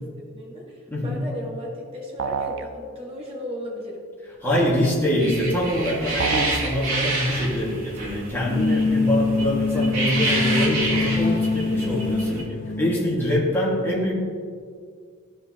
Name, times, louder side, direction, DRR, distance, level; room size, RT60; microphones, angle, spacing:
voice 1, 0.0-4.0 4.4-4.8, equal, 25° right, -4 dB, 1.7 m, -35 dB
voice 2, 0.9-1.2 4.4-14.1, equal, 10° left, -6 dB, 1.8 m, -24 dB
sound 1, 2.2-2.7 6.2-6.7, right 6 dB, 60° right, 0.4 m, -27 dB
sound 2, 5.2-12.4, right 2 dB, 85° right, 1.8 m, -29 dB
sound 3, 8.4-13.1, left 3 dB, 40° left, 0.4 m, -24 dB
13.5 x 5.6 x 2.9 m, 2.1 s
head